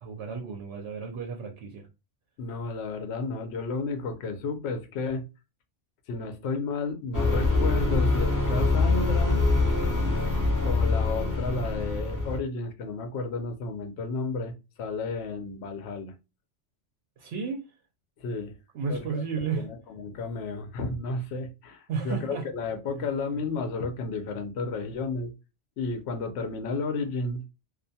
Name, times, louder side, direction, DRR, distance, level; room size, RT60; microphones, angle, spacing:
voice 1, 0.0-1.9 17.2-17.6 18.7-19.7 21.9-22.4 22.9-23.1, right 5 dB, 70° right, 0.8 m, -33 dB
voice 2, 2.4-5.2 6.1-9.4 10.6-14.5 14.8-16.2 18.2-18.5 18.9-19.1 19.5-25.3 25.8-27.4, left 3 dB, 70° left, 0.9 m, -32 dB
sound 1, 7.1-12.4, left 3 dB, 20° left, 0.6 m, -24 dB
2.4 x 2.2 x 2.6 m
omnidirectional pair, 1.2 m